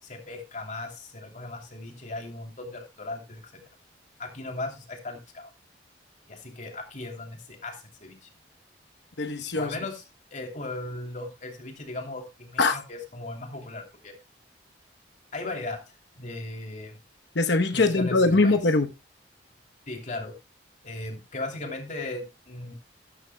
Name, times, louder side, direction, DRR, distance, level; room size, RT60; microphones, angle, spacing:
voice 1, 0.0-3.6 4.2-5.5 6.3-8.3 9.5-10.0 10.3-14.1 15.3-17.0 17.7-18.6 19.9-20.3 20.8-22.7, left 2 dB, 45° left, 3.0 m, -37 dB
voice 2, 9.2-9.7 12.6-12.8 17.3-18.9, left 3 dB, 65° left, 1.0 m, -22 dB
13.0 x 12.5 x 2.2 m
head